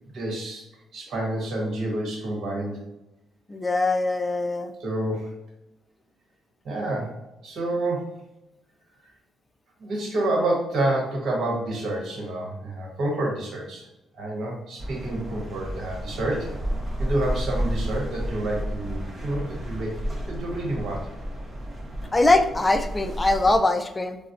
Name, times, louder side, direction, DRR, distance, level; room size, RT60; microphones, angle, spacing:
voice 1, 0.1-0.6 0.9-2.8 4.8-5.3 6.6-7.2 7.4-8.1 9.8-13.8 14.2-16.5 17.0-21.1, right 1 dB, 65° right, -1 dB, 1.0 m, -28 dB
voice 2, 3.5-4.7 22.1-24.2, left 2 dB, 20° left, 8 dB, 0.3 m, -22 dB
sound 1, 14.8-23.6, equal, 35° right, 0.7 m, -32 dB
3.9 x 2.0 x 2.5 m, 0.93 s
cardioid pair, 90°, 0 cm